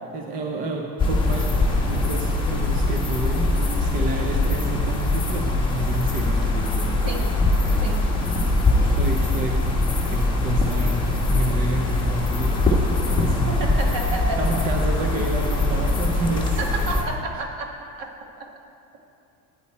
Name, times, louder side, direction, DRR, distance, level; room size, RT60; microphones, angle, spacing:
voice 1, 0.1-7.0 8.6-9.8 10.1-12.8 13.1-13.6 14.4-16.6, right 2 dB, 20° right, 2 dB, 0.3 m, -30 dB
sound 1, 1.0-17.0, left 2 dB, 10° left, 1.2 m, -22 dB
voice 2, 13.4-14.4 16.6-17.7 18.0-18.1 18.4-18.5, right 3 dB, 40° right, 1 dB, 1.5 m, -30 dB
13.5 x 9.7 x 4.2 m, 2.5 s
cardioid pair, 170°, 47 cm